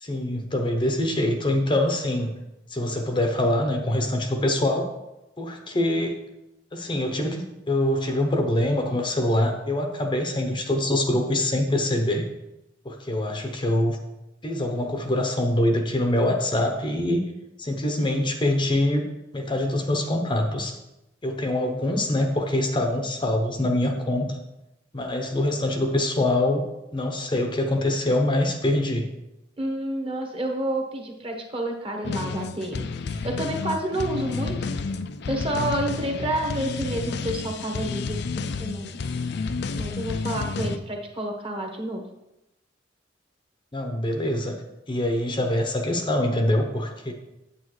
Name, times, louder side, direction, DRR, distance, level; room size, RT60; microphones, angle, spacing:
voice 1, 0.0-2.3 2.7-4.9 5.4-6.2 6.7-12.2 12.8-14.0 14.4-17.3 17.6-19.0 19.3-20.8 21.2-24.4 24.9-26.6 26.9-29.1 40.3-40.8 43.7-44.6 44.9-47.1, left 1 dB, 25° left, 4 dB, 0.7 m, -24 dB
voice 2, 29.6-34.7 35.3-39.0 39.8-42.0, right 1 dB, 30° right, 3 dB, 1.2 m, -29 dB
sound 1, 32.0-40.8, left 4 dB, 60° left, 0.4 m, -30 dB
8.6 x 8.0 x 3.2 m, 0.93 s
head